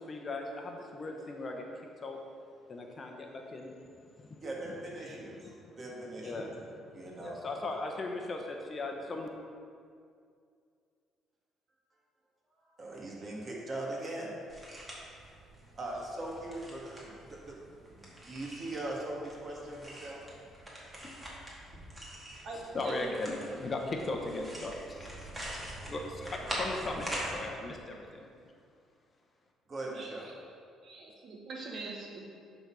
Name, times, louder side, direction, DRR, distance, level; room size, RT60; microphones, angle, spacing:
voice 1, 0.0-1.6 2.0-2.2 2.7-3.7 4.2-4.4 4.6-4.7 5.3-5.8 6.2-9.3 22.7-28.3, left 2 dB, 35° left, 2 dB, 0.9 m, -38 dB
voice 2, 4.4-5.5 5.8-6.5 6.9-7.4 12.7-14.6 15.8-17.5 17.9-20.2 26.4-26.7 29.7-30.3, right 2 dB, 35° right, -3 dB, 2.0 m, -40 dB
sound 1, 14.5-27.3, right 1 dB, 15° right, 2.0 m, -44 dB
voice 3, 22.4-23.0 23.3-23.6 29.9-30.1 30.8-32.2, right 3 dB, 55° right, -1 dB, 1.3 m, -43 dB
10.5 x 4.1 x 4.8 m, 2.3 s
cardioid pair, 100°, 0 cm